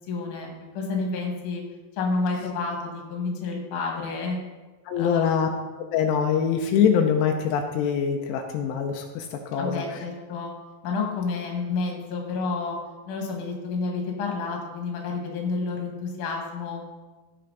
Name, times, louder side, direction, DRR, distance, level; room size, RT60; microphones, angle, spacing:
voice 1, 0.1-1.6 2.0-4.4 5.0-5.5 9.6-10.5 10.8-12.8 13.1-16.8, left 4 dB, 55° left, 0 dB, 2.7 m, -30 dB
voice 2, 4.9-5.5 5.8-10.0, left 7 dB, 85° left, 3 dB, 2.8 m, -24 dB
14.5 x 5.7 x 3.9 m, 1.2 s
omnidirectional pair, 5.0 m